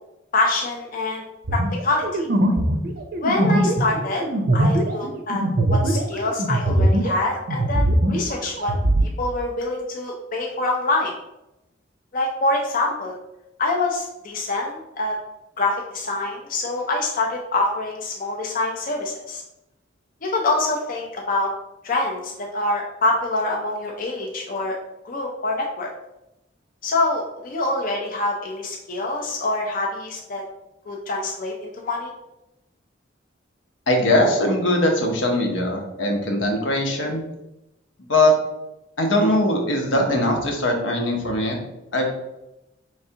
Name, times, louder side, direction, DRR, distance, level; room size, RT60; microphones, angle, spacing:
voice 1, 0.3-1.2 1.5-2.3 3.2-4.3 4.5-5.4 5.7-8.7 9.0-11.1 12.1-13.1 13.6-15.2 15.6-19.4 20.2-21.5 21.8-24.8 25.0-25.9 26.8-30.4 30.9-32.1, left 2 dB, 45° left, -1 dB, 0.5 m, -25 dB
sound 1, 1.5-7.2 7.5-9.1, right 1 dB, 55° right, 0.6 m, -21 dB
voice 2, 33.9-37.2 38.1-38.4 39.0-41.6 41.9-42.1, left 1 dB, 80° left, 1 dB, 0.8 m, -20 dB
4.6 x 3.3 x 2.8 m, 0.91 s
head